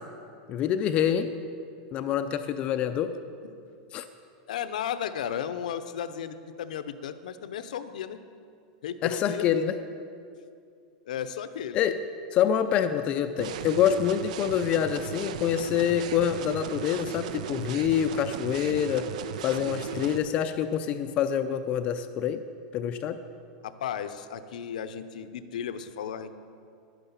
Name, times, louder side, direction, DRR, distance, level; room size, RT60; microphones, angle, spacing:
voice 1, 0.5-1.3 1.9-3.2 3.9-4.1 9.0-9.8 11.7-12.0 12.3-19.1 19.4-22.4 22.7-23.2, left 9 dB, 30° left, 9 dB, 0.4 m, -26 dB
voice 2, 4.5-8.2 8.8-9.5 11.1-11.8 19.9-20.4 23.6-26.3, left 8 dB, 90° left, 11 dB, 0.8 m, -35 dB
sound 1, 13.4-20.2, right 9 dB, 70° right, 0.6 m, -36 dB
11.0 x 9.8 x 7.0 m, 2.4 s
supercardioid pair, 165°, 4 cm